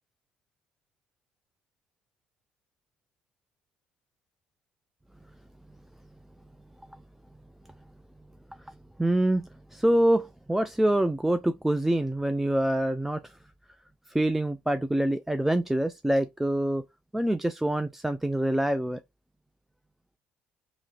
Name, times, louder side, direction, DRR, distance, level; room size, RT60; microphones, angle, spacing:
voice 1, 9.0-13.3 14.1-16.8 17.1-19.0, right 1 dB, 5° right, 0.3 m, -25 dB
2.9 x 2.7 x 3.8 m
supercardioid pair, 70°, 4 cm